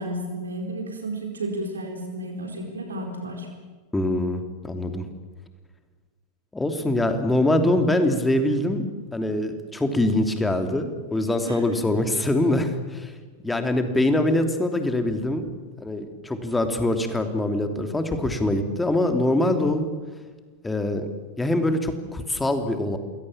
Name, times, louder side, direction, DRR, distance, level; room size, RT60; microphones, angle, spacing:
voice 1, 0.0-3.5 11.4-11.8, right 1 dB, 70° right, 2 dB, 4.3 m, -32 dB
voice 2, 3.9-5.1 6.5-13.1 13.4-15.5 15.8-19.9 20.6-21.1 21.4-23.0, left 1 dB, 10° left, 6 dB, 3.0 m, -24 dB
28.5 x 21.5 x 7.4 m, 1.4 s
figure-of-eight pair, 90°, 0 cm